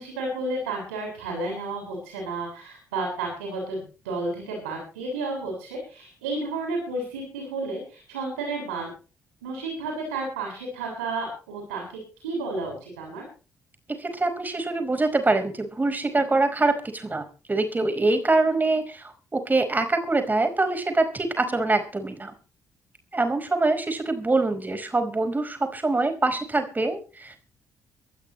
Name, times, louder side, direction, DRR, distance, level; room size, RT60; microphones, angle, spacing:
voice 1, 0.0-8.9 9.4-13.2, right 3 dB, 80° right, 0 dB, 7.5 m, -32 dB
voice 2, 14.0-22.3 23.1-27.4, right 2 dB, 25° right, 7 dB, 4.8 m, -24 dB
25.0 x 12.0 x 3.2 m, 0.37 s
figure-of-eight pair, 40°, 7 cm